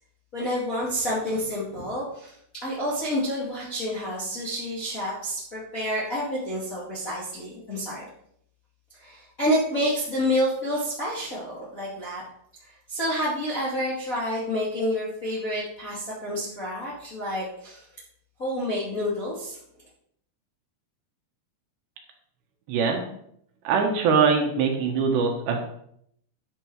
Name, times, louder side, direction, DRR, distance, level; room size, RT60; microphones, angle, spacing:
voice 1, 0.3-8.0 9.0-12.2 12.9-17.9 18.4-19.6, equal, 30° left, -6 dB, 1.7 m, -29 dB
voice 2, 22.7-23.0 23.6-25.6, right 5 dB, 70° right, 2 dB, 3.4 m, -22 dB
10.0 x 7.6 x 4.7 m, 0.70 s
omnidirectional pair, 5.3 m